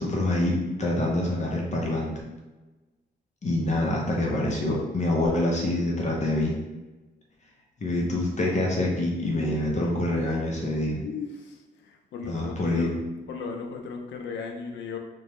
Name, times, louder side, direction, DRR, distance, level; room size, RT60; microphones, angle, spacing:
voice 1, 0.0-2.1 3.4-6.6 7.8-11.0 12.3-13.0, left 1 dB, 40° left, -2 dB, 0.6 m, -26 dB
voice 2, 10.9-13.0 13.3-15.0, left 5 dB, 80° left, 3 dB, 0.5 m, -36 dB
3.0 x 2.2 x 2.9 m, 1.1 s
cardioid pair, 75°, 19 cm